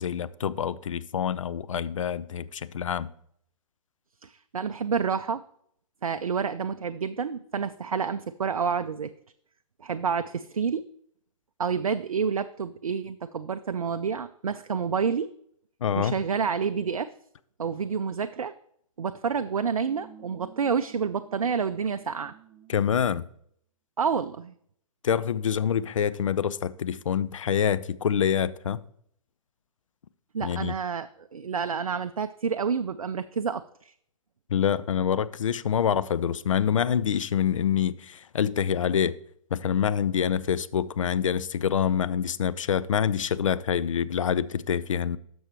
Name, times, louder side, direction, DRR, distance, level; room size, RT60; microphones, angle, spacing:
voice 1, 0.0-3.1 15.8-16.2 22.7-23.3 25.0-28.8 30.4-30.7 34.5-39.2 39.5-45.2, left 8 dB, 65° left, 0.4 m, -26 dB
voice 2, 4.2-5.4 6.0-9.1 9.8-10.8 11.6-15.3 16.0-17.1 17.6-18.5 19.0-22.3 24.0-24.5 30.3-33.9, right 6 dB, 75° right, 0.4 m, -29 dB
sound 1, 19.8-23.0, right 9 dB, 10° right, 0.7 m, -52 dB
12.0 x 6.2 x 3.0 m
figure-of-eight pair, 120°, 18 cm